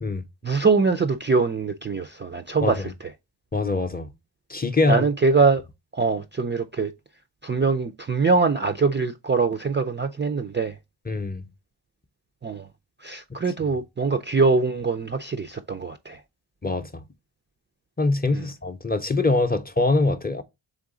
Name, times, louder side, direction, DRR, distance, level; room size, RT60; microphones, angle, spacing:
voice 1, 0.4-3.1 4.9-5.6 5.9-6.9 7.4-10.7 12.4-12.7 13.0-16.2 18.3-18.5, right 4 dB, 25° right, 0.3 m, -23 dB
voice 2, 3.5-4.1 4.5-5.1 11.1-11.4 16.6-17.0 18.0-20.4, left 2 dB, 20° left, 0.6 m, -23 dB
3.7 x 3.4 x 3.7 m
cardioid pair, 50°, 46 cm